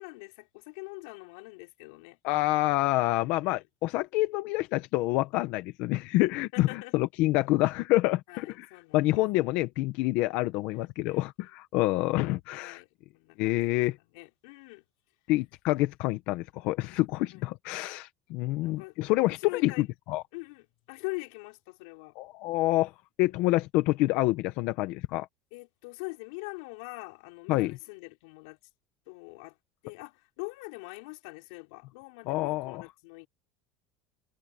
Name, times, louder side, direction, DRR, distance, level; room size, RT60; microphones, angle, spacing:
voice 1, 0.0-2.2 3.2-3.7 6.5-7.0 8.3-9.2 10.7-11.5 12.5-12.9 13.1-13.8 14.1-14.8 17.3-17.4 18.6-19.9 20.3-22.2 25.5-28.6 29.1-29.6 29.8-33.3, left 29 dB, 80° left, 4.8 m, -43 dB
voice 2, 2.2-8.7 8.9-12.8 13.4-14.0 15.3-20.2 22.2-22.9 23.2-25.3 27.5-27.8 32.3-32.8, left 18 dB, 60° left, 1.2 m, -27 dB
cardioid pair, 160°, 3 cm